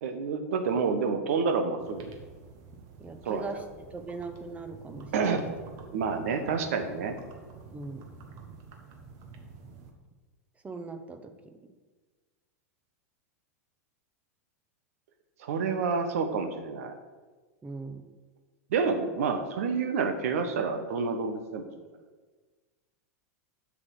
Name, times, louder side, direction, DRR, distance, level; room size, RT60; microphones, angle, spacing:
voice 1, 0.0-2.1 3.2-3.4 5.1-5.4 5.9-7.2 15.4-16.9 18.7-21.6, right 5 dB, 65° right, 7 dB, 1.2 m, -28 dB
sound 1, 1.8-9.9, right 5 dB, 50° right, 1.4 m, -48 dB
voice 2, 3.0-3.6 3.9-5.5 7.7-8.0 10.6-11.6 17.6-18.0, right 3 dB, 15° right, 8 dB, 1.0 m, -40 dB
7.5 x 6.3 x 6.5 m, 1.4 s
hypercardioid pair, 95°, 8 cm